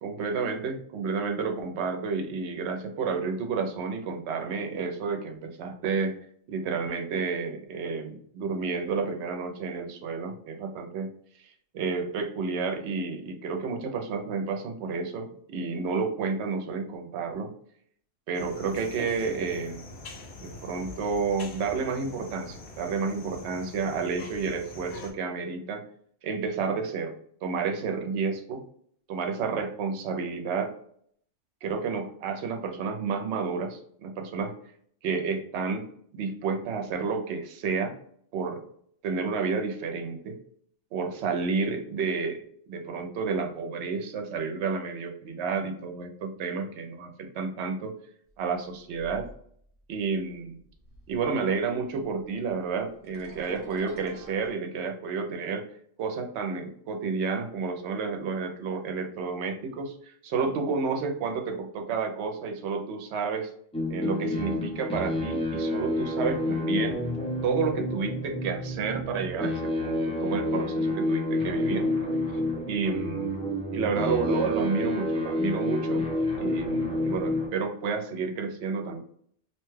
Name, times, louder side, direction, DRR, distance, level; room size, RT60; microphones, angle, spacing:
voice 1, 0.0-6.2 6.5-11.1 11.7-17.5 18.3-19.8 20.4-25.8 26.2-27.1 27.4-28.6 29.1-30.7 31.6-34.5 35.0-37.9 38.3-38.6 39.0-40.4 40.9-42.4 42.7-47.9 48.4-49.2 49.9-50.6 51.1-55.7 56.0-63.5 63.9-67.0 67.4-71.9 72.7-73.4 73.7-76.0 76.4-79.0, right 5 dB, 70° right, 4 dB, 0.8 m, -30 dB
sound 1, 18.3-25.1, left 2 dB, 65° left, 0.8 m, -44 dB
sound 2, 48.5-48.6 48.9-49.8 50.1-51.4 51.7-54.5, equal, 20° right, 0.9 m, -48 dB
sound 3, 63.7-77.5, left 1 dB, 10° left, 0.4 m, -29 dB
2.8 x 2.2 x 3.1 m, 0.63 s
omnidirectional pair, 1.3 m